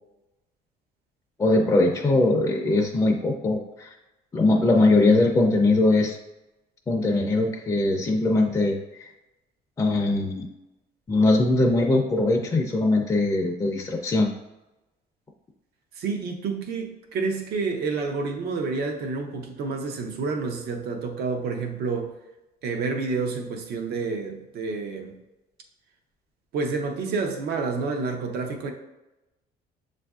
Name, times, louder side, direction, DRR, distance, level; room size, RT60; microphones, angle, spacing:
voice 1, 1.4-3.9 4.3-6.2 6.9-9.1 9.8-10.5 11.1-14.3, left 2 dB, 20° left, 1 dB, 0.4 m, -21 dB
voice 2, 16.0-22.1 22.6-25.2 26.5-28.7, right 4 dB, 70° right, 3 dB, 0.7 m, -29 dB
7.1 x 2.5 x 2.3 m, 0.98 s
cardioid pair, 110°, 17 cm